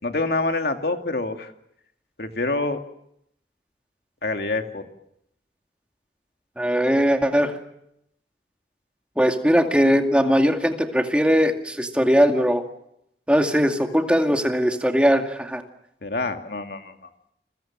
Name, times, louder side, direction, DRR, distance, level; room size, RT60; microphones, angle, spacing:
voice 1, 0.0-1.5 2.2-2.8 4.2-4.8 16.0-16.9, left 2 dB, 60° left, 5 dB, 2.5 m, -26 dB
voice 2, 6.6-7.5 9.2-12.6 13.3-15.6, equal, 5° right, 4 dB, 2.2 m, -20 dB
30.0 x 22.5 x 7.6 m, 0.78 s
head